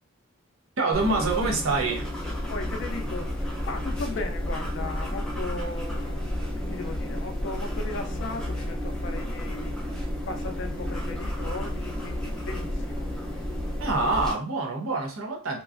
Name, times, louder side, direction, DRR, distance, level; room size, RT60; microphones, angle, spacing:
voice 1, 0.8-2.1 13.8-15.6, right 3 dB, 80° right, 0.7 m, -26 dB
sound 1, 0.9-14.3, equal, 5° left, 0.5 m, -31 dB
voice 2, 2.5-6.3 6.7-9.8 10.3-13.1, left 3 dB, 60° left, 0.4 m, -37 dB
2.9 x 2.3 x 2.4 m
head